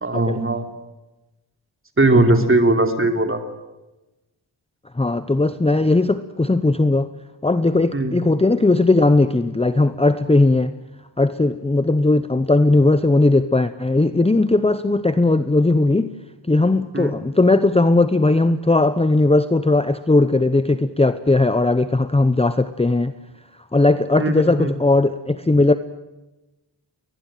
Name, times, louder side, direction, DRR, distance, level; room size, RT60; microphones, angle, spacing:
voice 1, 0.0-0.6 2.0-3.4 7.9-8.1 16.9-17.1 24.2-24.7, right 2 dB, 25° right, 6 dB, 3.5 m, -18 dB
voice 2, 5.0-7.1 7.4-10.7 11.2-16.1 16.5-23.1 23.7-25.8, left 2 dB, 15° left, 13 dB, 0.8 m, -18 dB
22.0 x 20.5 x 9.3 m, 1.0 s
wide cardioid pair, 90°, 46 cm